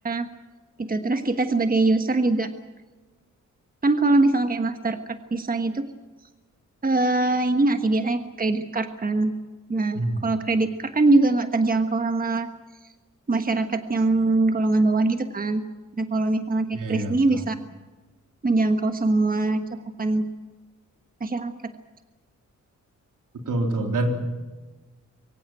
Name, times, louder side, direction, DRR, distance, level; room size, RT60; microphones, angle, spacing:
voice 1, 0.8-2.5 3.8-5.9 6.8-9.3 9.7-12.5 13.3-15.6 16.0-17.6 18.4-19.6 20.0-20.3 21.2-21.7, right 2 dB, 30° right, 7 dB, 1.3 m, -22 dB
voice 2, 16.7-17.4 23.5-24.2, right 1 dB, 80° right, 3 dB, 3.6 m, -26 dB
24.0 x 17.0 x 9.1 m, 1.3 s
wide cardioid pair, 105°, 31 cm